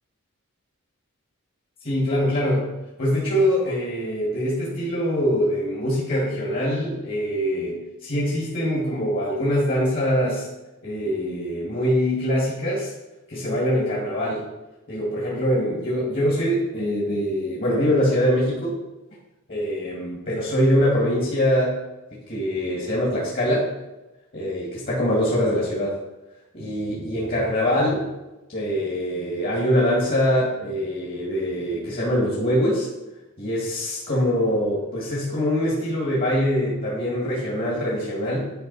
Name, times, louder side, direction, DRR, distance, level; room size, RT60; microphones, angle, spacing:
voice 1, 1.8-2.7 3.0-10.5 10.8-12.9 13.3-14.4 14.9-18.8 19.5-21.8 22.3-23.7 24.3-25.9 26.5-28.0 28.5-32.9 33.4-38.5, equal, 40° left, -5 dB, 1.9 m, -23 dB
10.5 x 5.1 x 4.0 m, 1.0 s
head